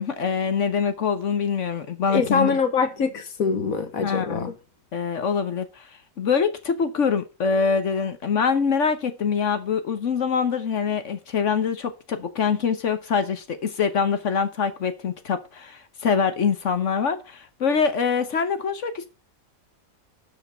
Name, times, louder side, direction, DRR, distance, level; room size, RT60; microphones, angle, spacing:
voice 1, 0.0-2.6 4.0-4.5 4.9-5.8 6.2-19.1, left 6 dB, 65° left, 1.3 m, -24 dB
voice 2, 2.1-4.5, left 5 dB, 90° left, 1.9 m, -24 dB
12.5 x 5.1 x 6.7 m
omnidirectional pair, 1.4 m